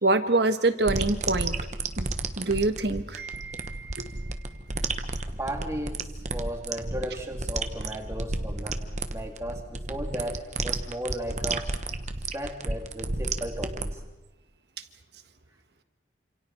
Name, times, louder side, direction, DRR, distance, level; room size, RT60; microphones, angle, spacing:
voice 1, 0.0-1.5 2.0-2.1 2.4-3.9, right 2 dB, 60° right, 9 dB, 1.5 m, -25 dB
sound 1, 0.9-13.9, right 3 dB, 40° right, 1.2 m, -32 dB
voice 2, 5.4-8.8 9.1-11.7 12.3-14.0, equal, 15° right, 2 dB, 3.0 m, -35 dB
29.0 x 27.0 x 4.4 m, 1.0 s
head